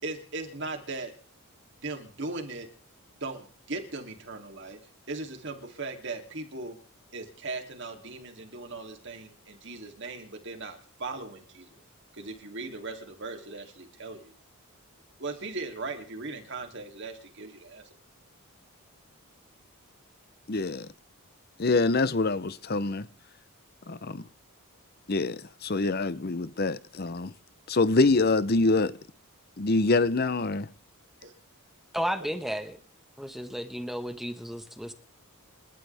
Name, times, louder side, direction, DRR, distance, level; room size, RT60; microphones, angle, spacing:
voice 1, 0.0-1.1 1.8-2.7 3.2-4.8 5.1-6.8 7.1-11.8 12.1-14.3 15.2-17.8 31.2-31.3 32.2-32.5, right 3 dB, 55° right, 3.0 m, -38 dB
voice 2, 20.5-20.9 21.6-23.1 23.9-24.2 25.1-27.3 27.7-28.9 29.6-30.7, left 3 dB, 45° left, 0.7 m, -25 dB
voice 3, 31.9-32.8 33.2-34.9, equal, ahead, 1.3 m, -33 dB
29.5 x 12.5 x 3.5 m
head